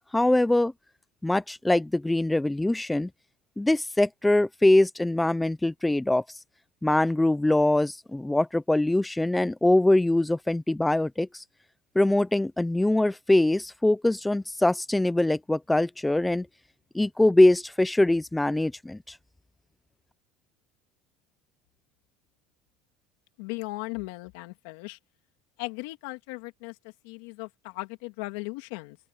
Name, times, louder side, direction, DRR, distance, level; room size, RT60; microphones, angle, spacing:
voice 1, 0.1-0.7 1.2-3.1 3.6-6.2 6.8-11.4 12.0-16.5 16.9-19.2, left 1 dB, 5° left, 0.6 m, -23 dB
voice 2, 23.4-25.0 25.6-29.0, left 24 dB, 80° left, 2.8 m, -37 dB
open air
cardioid pair, 165°, 0 cm